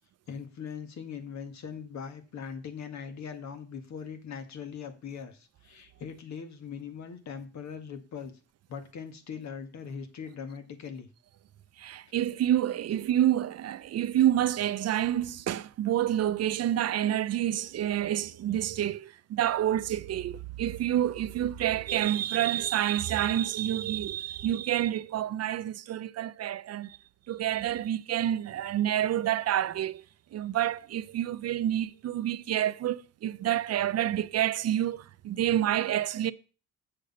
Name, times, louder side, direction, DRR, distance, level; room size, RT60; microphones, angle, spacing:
voice 1, 0.3-8.3 8.7-11.1, left 6 dB, 65° left, 1.7 m, -41 dB
voice 2, 11.8-27.0 27.3-30.0 30.3-36.3, right 11 dB, 55° right, 0.5 m, -28 dB
8.0 x 6.6 x 5.4 m
cardioid pair, 90°, 30 cm